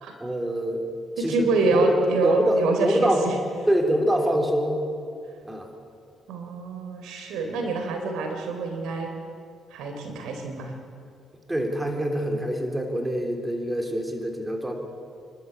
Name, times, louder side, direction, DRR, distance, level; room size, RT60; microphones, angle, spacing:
voice 1, 0.2-2.0 2.2-3.2 3.7-4.8 5.4-5.7 11.5-14.8, equal, 10° right, 3 dB, 3.4 m, -25 dB
voice 2, 1.2-3.3 6.3-9.1 9.7-10.7, right 3 dB, 90° right, 4 dB, 3.4 m, -26 dB
28.0 x 12.5 x 8.6 m, 2.3 s
cardioid pair, 90°, 0 cm